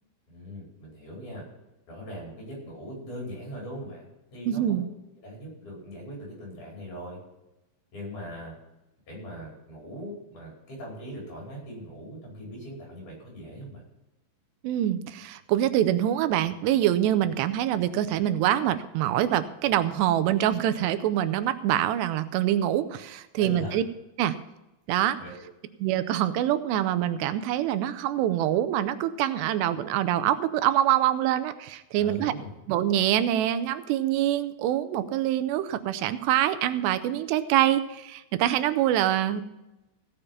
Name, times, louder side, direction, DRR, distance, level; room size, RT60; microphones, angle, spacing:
voice 1, 0.3-1.4 1.9-4.8 5.2-7.2 7.9-8.5 9.1-13.8 23.4-23.8 25.2-25.4 31.9-32.5, equal, 45° left, -3 dB, 6.2 m, -40 dB
voice 2, 4.5-4.9 14.6-23.8 24.2-24.4 24.9-25.2 25.8-32.3 32.7-39.4, right 12 dB, 90° right, 12 dB, 2.8 m, -25 dB
16.0 x 6.9 x 5.6 m, 0.98 s
omnidirectional pair, 4.9 m